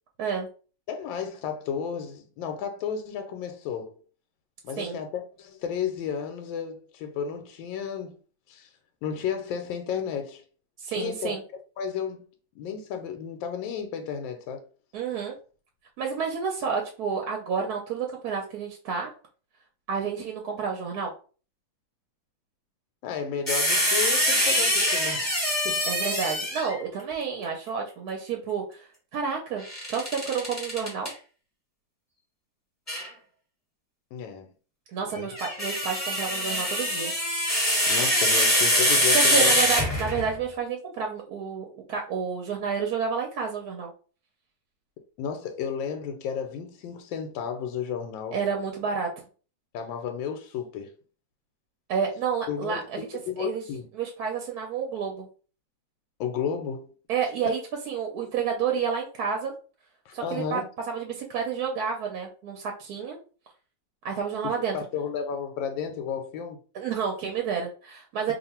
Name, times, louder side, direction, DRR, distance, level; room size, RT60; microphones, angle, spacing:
voice 1, 0.9-4.0 4.6-8.2 8.5-8.7 9.0-10.4 10.9-11.4 11.8-12.2 12.5-14.7 23.0-25.3 25.6-25.9 34.1-34.5 35.1-35.3 37.9-39.5 45.2-48.4 49.7-50.9 52.5-53.9 56.2-56.9 60.1-60.6 64.4-66.6, left 7 dB, 85° left, 1.3 m, -33 dB
voice 2, 10.8-11.4 14.9-15.4 16.0-19.1 19.9-21.1 25.8-29.6 29.9-31.1 34.9-37.1 39.1-43.9 48.3-49.1 51.9-53.1 53.4-53.6 53.9-55.3 57.1-57.6 57.9-59.5 60.1-60.6 60.9-63.2 64.0-64.8 66.7-68.3, right 6 dB, 65° right, 1.0 m, -30 dB
sound 1, 23.5-26.8 29.6-31.1 32.9-33.1 35.2-40.3, equal, 10° left, 1.3 m, -24 dB
2.8 x 2.5 x 4.2 m
omnidirectional pair, 2.0 m